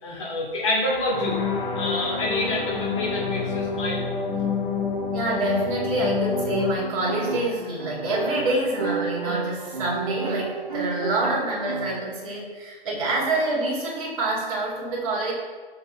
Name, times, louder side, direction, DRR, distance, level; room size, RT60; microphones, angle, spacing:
voice 1, 0.0-1.4 1.8-4.0 13.0-13.1, left 1 dB, 30° left, -6 dB, 2.6 m, -27 dB
sound 1, 1.1-6.7, left 5 dB, 15° left, 1.0 m, -27 dB
voice 2, 5.1-15.3, right 2 dB, 35° right, -5 dB, 2.5 m, -26 dB
sound 2, 6.3-12.0, right 5 dB, 60° right, 1.2 m, -32 dB
12.5 x 6.9 x 2.3 m, 1.4 s
figure-of-eight pair, 140°, 29 cm